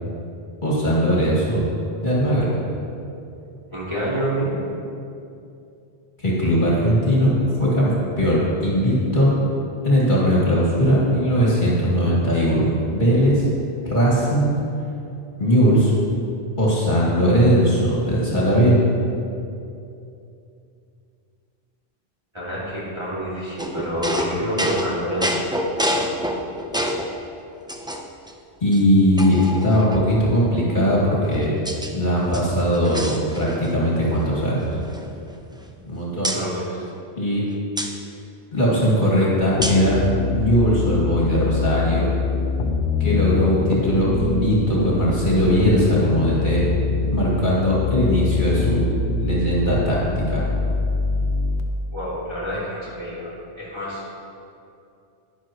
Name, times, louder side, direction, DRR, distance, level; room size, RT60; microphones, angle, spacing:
voice 1, 0.6-1.6 2.0-2.5 6.2-7.3 7.6-9.3 9.8-13.4 13.8-14.5 15.4-15.9 16.6-18.8 28.6-31.5 31.9-34.7 35.8-36.4 37.2-37.4 38.5-39.9 40.3-42.1 43.0-46.6 47.1-48.8 49.2-50.4, equal, 50° left, -6 dB, 2.3 m, -19 dB
voice 2, 3.7-4.6 22.3-25.4 36.3-36.8 51.9-54.1, equal, 25° right, -9 dB, 2.7 m, -28 dB
sound 1, 23.6-27.2 27.7-28.3 28.7-28.8 29.2-30.2 31.0-31.9 32.2-33.8 34.0-34.3 34.6-35.9 36.2-36.4 37.8-37.9 39.6-39.9, equal, 5° right, 0.3 m, -28 dB
sound 2, 39.6-51.6, left 4 dB, 85° left, 1.0 m, -24 dB
11.0 x 10.5 x 3.0 m, 2.6 s
omnidirectional pair, 1.1 m